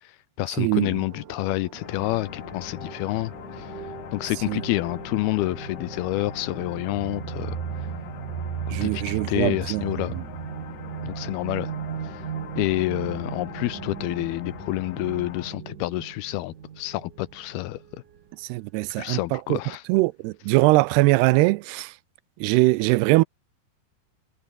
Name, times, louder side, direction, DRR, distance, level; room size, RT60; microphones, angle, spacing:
voice 1, 0.0-3.9 4.1-7.6 8.7-10.2 11.0-11.7 12.0-12.2 12.6-18.0 19.0-19.8, left 17 dB, 80° left, 2.5 m, -28 dB
voice 2, 0.6-0.9 4.5-4.6 8.7-9.8 18.5-19.6 19.9-21.9 22.4-23.2, right 21 dB, 85° right, 2.6 m, -21 dB
sound 1, 1.1-18.2, right 8 dB, 55° right, 3.5 m, -37 dB
sound 2, 1.8-15.5, left 10 dB, 55° left, 2.4 m, -41 dB
omnidirectional pair, 4.8 m